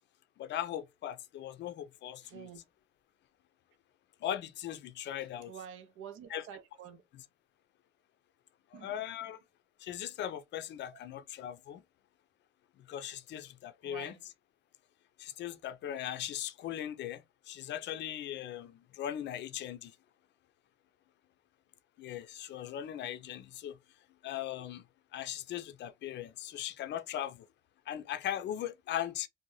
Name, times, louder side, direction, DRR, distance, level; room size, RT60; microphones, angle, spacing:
voice 1, 0.4-2.5 4.2-5.5 6.3-6.4 8.7-9.4 9.8-11.8 12.8-14.1 15.2-20.0 22.0-23.8 24.2-24.8 25.1-27.5 27.9-29.3, left 11 dB, 65° left, 0.4 m, -39 dB
voice 2, 2.2-2.6 5.2-7.0 8.7-9.3 10.9-11.0 13.8-14.2, right 9 dB, 90° right, 0.5 m, -49 dB
2.6 x 2.1 x 3.0 m
cardioid pair, 90°, 20 cm